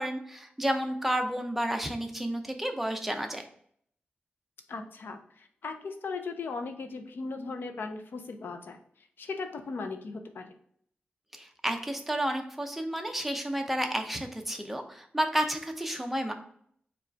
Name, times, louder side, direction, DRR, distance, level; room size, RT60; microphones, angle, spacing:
voice 1, 0.0-3.5 11.3-16.3, right 1 dB, 5° right, 4 dB, 0.6 m, -31 dB
voice 2, 4.7-8.8 9.2-10.5, left 4 dB, 80° left, 6 dB, 0.6 m, -37 dB
4.8 x 2.4 x 4.5 m, 0.65 s
wide cardioid pair, 115°, 4 cm